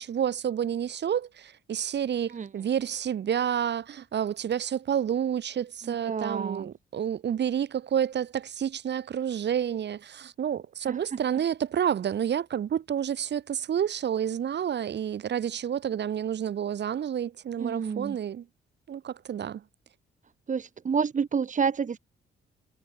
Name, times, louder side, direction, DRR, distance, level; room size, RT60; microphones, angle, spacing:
voice 1, 0.0-18.5 18.9-19.6, right 9 dB, 60° right, 5.8 m, -29 dB
voice 2, 5.9-6.7 10.9-11.2 17.6-18.2 20.5-22.0, right 6 dB, 40° right, 2.0 m, -29 dB
cardioid pair, 90°, 20 cm